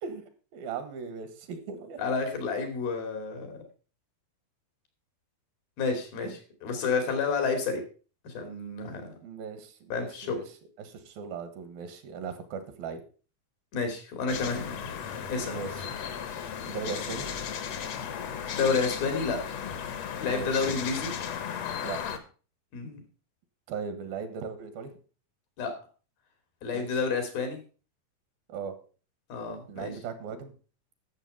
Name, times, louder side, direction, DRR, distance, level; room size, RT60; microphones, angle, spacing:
voice 1, 0.0-2.0 6.2-6.4 9.2-13.0 15.5-15.9 16.7-17.3 20.3-20.7 21.8-22.2 23.7-24.9 26.7-27.0 28.5-28.7 29.7-30.5, right 6 dB, 80° right, 10 dB, 3.3 m, -38 dB
voice 2, 2.0-3.5 5.8-7.8 8.2-9.1 9.9-10.4 13.7-14.8 15.3-15.6 18.5-19.4 20.2-21.1 22.7-23.0 25.6-25.7 26.6-27.6 29.3-29.9, left 4 dB, 80° left, 6 dB, 4.5 m, -30 dB
sound 1, 14.3-22.2, left 8 dB, 60° left, 1.8 m, -35 dB
13.0 x 6.8 x 5.4 m, 0.37 s
omnidirectional pair, 4.1 m